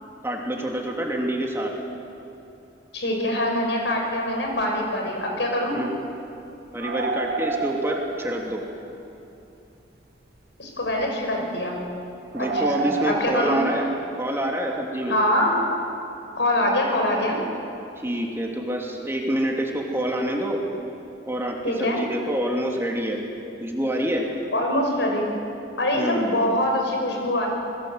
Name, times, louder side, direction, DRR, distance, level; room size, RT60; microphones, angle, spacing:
voice 1, 0.2-1.7 5.7-5.9 6.7-8.6 12.3-13.9 14.2-15.2 18.0-20.6 21.3-23.2 23.6-24.3 25.9-26.3, right 1 dB, 15° right, 0 dB, 2.7 m, -27 dB
voice 2, 2.9-5.8 10.6-11.8 12.5-13.6 15.1-15.6 16.4-17.4 21.6-22.0 24.5-25.3 25.8-27.5, left 1 dB, 75° left, 1 dB, 6.2 m, -24 dB
sound 1, 4.1-4.2 4.6-4.7 4.9-5.0 6.8-8.8 9.4-9.5 10.8-11.1 12.3-13.1, right 4 dB, 60° right, 1.7 m, -29 dB
28.0 x 21.0 x 8.1 m, 2.7 s
head